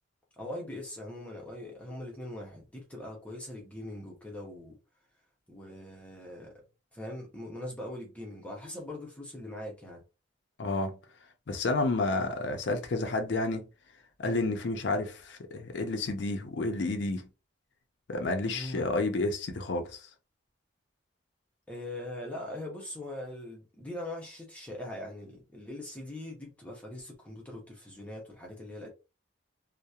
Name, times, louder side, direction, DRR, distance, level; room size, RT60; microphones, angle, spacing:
voice 1, 0.4-4.8 5.5-6.5 6.9-10.0 18.5-18.9 21.7-28.9, left 1 dB, 5° left, 0.6 m, -41 dB
voice 2, 10.6-11.0 11.5-13.7 14.2-17.3 18.1-20.1, left 2 dB, 65° left, 0.5 m, -30 dB
2.8 x 2.0 x 2.3 m
head